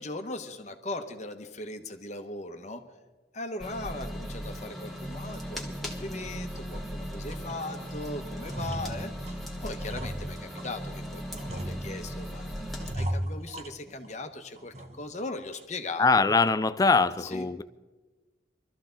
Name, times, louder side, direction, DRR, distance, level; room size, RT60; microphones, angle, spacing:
voice 1, 0.0-2.8 3.3-9.3 9.6-16.2 17.2-17.5, left 2 dB, 40° left, 1.2 m, -39 dB
sound 1, 3.6-12.9, equal, ahead, 1.5 m, -37 dB
sound 2, 4.8-4.9 5.4-5.5 6.0-6.9 7.3-7.9 8.2-10.8 11.3-12.3 12.8-14.2 14.6-15.2 15.5-15.6 16.1-16.5, right 1 dB, 35° right, 1.0 m, -38 dB
voice 2, 16.0-17.6, left 4 dB, 20° left, 0.4 m, -22 dB
23.5 x 13.5 x 3.9 m
head